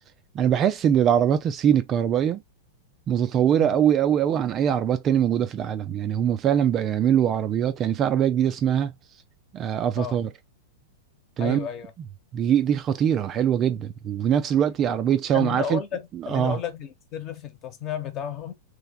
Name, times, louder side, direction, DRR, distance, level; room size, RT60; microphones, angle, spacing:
voice 1, 0.3-2.4 3.1-8.9 9.5-10.3 11.4-11.7 12.3-15.8 16.1-16.6, right 9 dB, 30° right, 0.4 m, -22 dB
voice 2, 11.4-11.9 15.3-18.5, left 8 dB, 35° left, 1.1 m, -32 dB
3.4 x 3.3 x 3.5 m
figure-of-eight pair, 95°, 0 cm